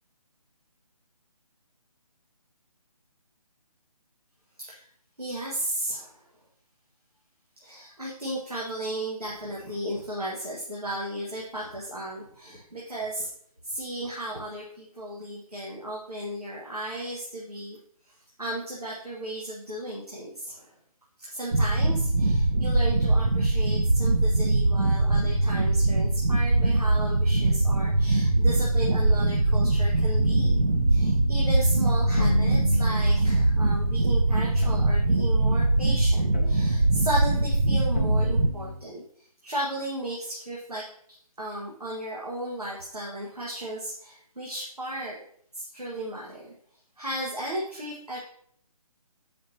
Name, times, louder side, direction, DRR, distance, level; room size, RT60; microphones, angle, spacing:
voice 1, 5.2-6.2 7.6-13.3 13.6-17.8 18.0-20.7 21.2-30.6 30.9-45.2 45.5-46.5 47.0-48.2, right 1 dB, 90° right, -5 dB, 1.6 m, -35 dB
sound 1, 21.5-38.5, right 2 dB, 70° right, 0.8 m, -22 dB
sound 2, 30.2-38.7, left 2 dB, 20° left, 0.3 m, -34 dB
7.1 x 5.1 x 2.8 m, 0.64 s
figure-of-eight pair, 150°, 19 cm